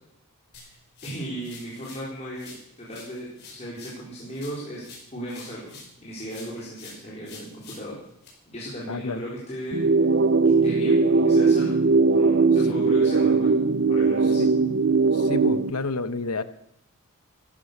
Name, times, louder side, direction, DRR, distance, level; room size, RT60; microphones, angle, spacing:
sound 1, 0.5-2.1 2.4-6.0 6.3-8.3, left 4 dB, 50° left, 5.6 m, -47 dB
voice 1, 1.0-4.8 5.1-8.0 8.5-10.1 10.6-11.8 12.1-13.5 13.9-14.4, right 1 dB, 30° left, -6 dB, 3.9 m, -36 dB
voice 2, 8.9-9.2 14.4-14.5 15.1-16.4, left 3 dB, 90° left, 12 dB, 1.0 m, -30 dB
sound 2, 9.7-15.7, right 4 dB, 50° right, 0.5 m, -20 dB
14.0 x 13.0 x 6.6 m, 0.74 s
head